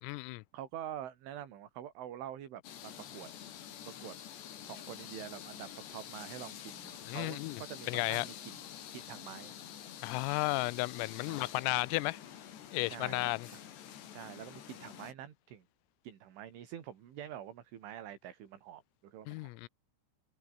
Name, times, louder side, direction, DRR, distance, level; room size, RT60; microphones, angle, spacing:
voice 1, 0.0-0.4 7.1-7.6 7.9-8.3 10.0-12.2 12.7-13.5 19.3-19.7, left 23 dB, 85° left, 3.3 m, -33 dB
voice 2, 0.5-3.3 3.9-4.2 4.7-8.6 8.9-9.5 11.3-11.8 12.8-13.6 14.1-15.6 16.0-19.5, right 11 dB, 70° right, 5.2 m, -46 dB
sound 1, 2.6-15.1, left 10 dB, 60° left, 4.4 m, -48 dB
omnidirectional pair, 6.0 m